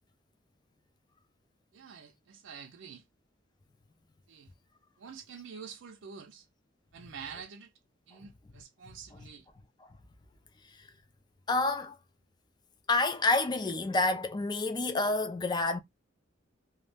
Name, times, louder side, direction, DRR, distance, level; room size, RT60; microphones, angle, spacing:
voice 1, 1.7-3.0 4.3-4.5 5.0-6.5 6.9-7.7 8.1-9.5, right 6 dB, 75° right, 0.4 m, -47 dB
voice 2, 11.5-12.0 12.9-15.8, left 2 dB, 20° left, 0.3 m, -28 dB
2.2 x 2.0 x 3.3 m
head